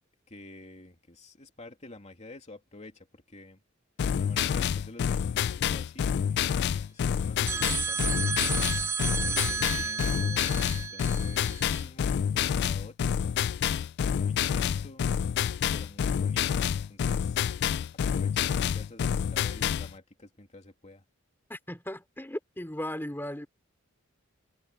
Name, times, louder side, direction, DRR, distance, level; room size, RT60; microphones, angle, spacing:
voice 1, 0.3-3.6 4.1-8.5 9.1-13.4 14.1-15.1 15.7-17.4 18.1-21.0, left 2 dB, 35° left, 2.8 m, -49 dB
sound 1, 4.0-19.9, left 8 dB, 55° left, 0.3 m, -28 dB
sound 2, 7.5-11.8, right 5 dB, 15° right, 0.5 m, -32 dB
voice 2, 21.5-23.5, left 1 dB, 10° left, 3.1 m, -36 dB
head